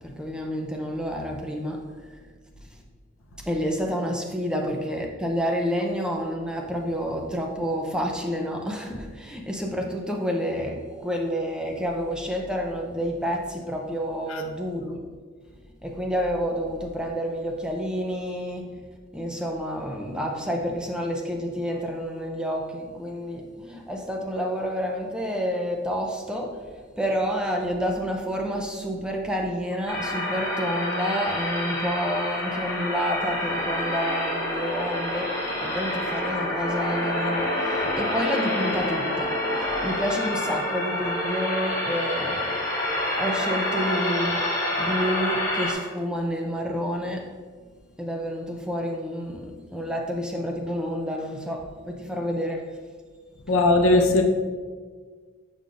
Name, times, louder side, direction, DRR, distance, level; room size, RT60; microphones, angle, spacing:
voice 1, 0.0-2.2 2.7-2.8 3.5-15.1 15.8-18.7 19.1-44.4 44.8-47.3 48.0-52.8, equal, 5° right, 1 dB, 0.5 m, -29 dB
sound 1, 29.9-45.7, left 1 dB, 15° left, 1.1 m, -27 dB
voice 2, 53.5-54.2, left 2 dB, 65° left, 4 dB, 0.7 m, -18 dB
7.5 x 5.2 x 2.4 m, 1.5 s
head